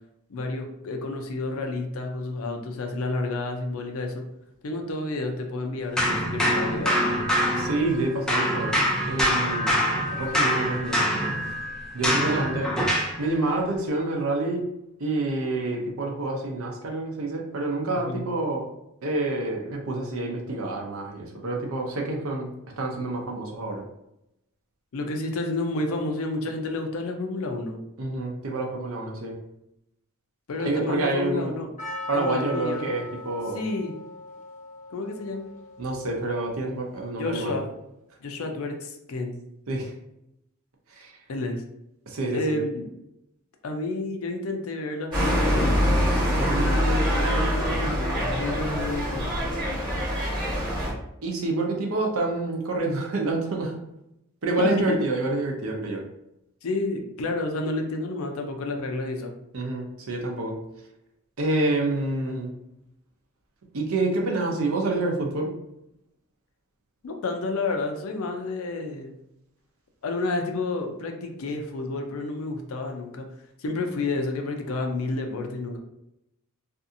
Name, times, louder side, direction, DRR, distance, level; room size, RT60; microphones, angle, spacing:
voice 1, 0.3-4.2 4.6-7.3 18.1-18.3 24.9-27.8 30.5-31.7 32.1-32.9 33.5-33.9 34.9-35.5 37.2-37.7 38.2-39.4 41.3-41.6 42.3-42.9 43.6-45.8 46.6-49.3 54.6-55.0 56.6-59.3 67.0-69.1 70.0-73.3 73.6-75.8, left 2 dB, 70° left, 4 dB, 0.5 m, -30 dB
sound 1, 6.0-8.0 8.3-13.2, equal, 5° left, 0.3 m, -25 dB
voice 2, 7.6-8.8 9.1-9.8 10.1-11.1 11.9-12.7 13.2-14.6 15.0-18.6 19.0-22.5 22.8-23.8 28.0-29.3 30.6-31.6 32.1-33.6 35.8-37.5 39.7-39.9 40.9-41.1 42.1-42.6 46.4-46.7 51.2-53.7 54.4-56.0 59.5-60.6 61.4-62.5 63.7-65.5, right 2 dB, 70° right, 1 dB, 0.6 m, -27 dB
Percussion, 31.8-36.7, left 2 dB, 35° left, 0.7 m, -40 dB
sound 2, 45.1-50.9, equal, 25° right, 1.0 m, -24 dB
2.6 x 2.4 x 2.6 m, 0.84 s
head